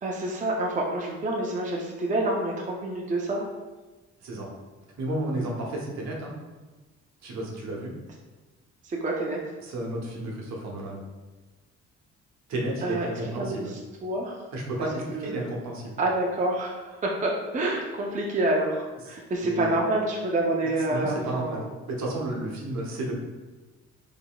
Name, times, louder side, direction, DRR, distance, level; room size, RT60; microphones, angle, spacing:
voice 1, 0.0-3.4 8.8-9.4 12.8-13.1 13.4-14.4 15.1-15.5 16.0-21.6, right 2 dB, 25° right, -1 dB, 0.5 m, -28 dB
voice 2, 5.0-6.3 7.2-7.9 9.6-11.0 12.5-13.7 14.5-16.0 19.1-19.2 19.4-19.8 20.9-23.1, right 1 dB, 65° right, -2 dB, 1.0 m, -32 dB
3.8 x 3.5 x 2.3 m, 1.2 s
cardioid pair, 90°, 30 cm